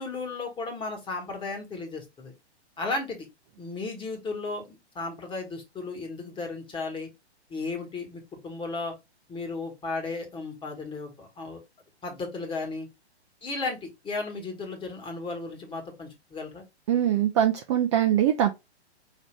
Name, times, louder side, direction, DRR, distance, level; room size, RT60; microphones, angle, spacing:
voice 1, 0.0-2.3 2.8-3.3 3.6-7.1 7.5-8.9 9.3-11.6 12.0-12.9 13.4-16.6, left 3 dB, 15° left, 1.3 m, -34 dB
voice 2, 16.9-18.5, right 10 dB, 30° right, 0.4 m, -22 dB
4.9 x 2.7 x 3.2 m
hypercardioid pair, 125°, 34 cm